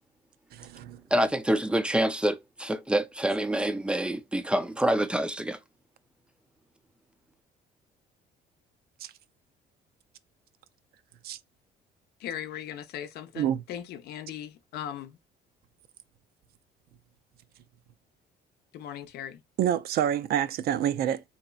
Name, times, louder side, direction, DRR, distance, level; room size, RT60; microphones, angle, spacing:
voice 1, 0.5-1.0 9.0-9.1 11.2-11.4 13.4-13.6 19.6-21.2, right 10 dB, 65° right, 0.4 m, -27 dB
voice 2, 1.1-5.6, right 1 dB, 5° right, 0.4 m, -26 dB
voice 3, 12.2-15.2 18.7-19.4, left 10 dB, 75° left, 0.6 m, -38 dB
3.9 x 2.8 x 2.2 m
cardioid pair, 110°, 17 cm